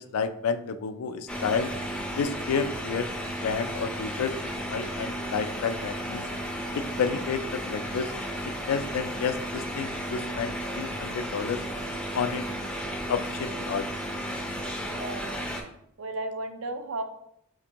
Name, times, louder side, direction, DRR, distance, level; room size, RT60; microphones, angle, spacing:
voice 1, 0.0-1.7 2.2-3.1 3.4-6.2 6.7-8.1 8.7-11.6 12.1-12.4 13.1-13.9, left 6 dB, 80° left, 11 dB, 0.3 m, -30 dB
sound 1, 1.3-15.6, equal, 5° left, 0.4 m, -34 dB
voice 2, 14.8-15.3 16.0-17.0, right 2 dB, 70° right, 7 dB, 0.5 m, -34 dB
4.2 x 2.6 x 2.8 m, 0.74 s
head